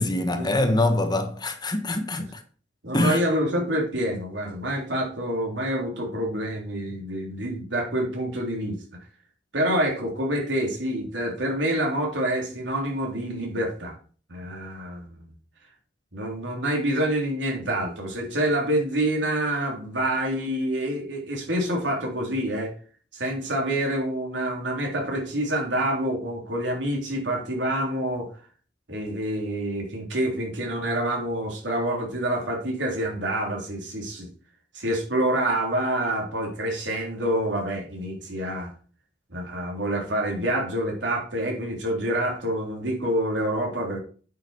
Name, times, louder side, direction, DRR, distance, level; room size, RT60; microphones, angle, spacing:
voice 1, 0.0-2.4 2.9-3.2, left 2 dB, 25° left, 1.3 m, -24 dB
voice 2, 2.8-8.8 9.5-14.0 14.3-15.3 16.1-22.7 23.1-28.3 28.9-34.3 34.7-38.7 39.3-44.0, right 1 dB, 85° right, 3.6 m, -27 dB
9.5 x 6.2 x 4.5 m
head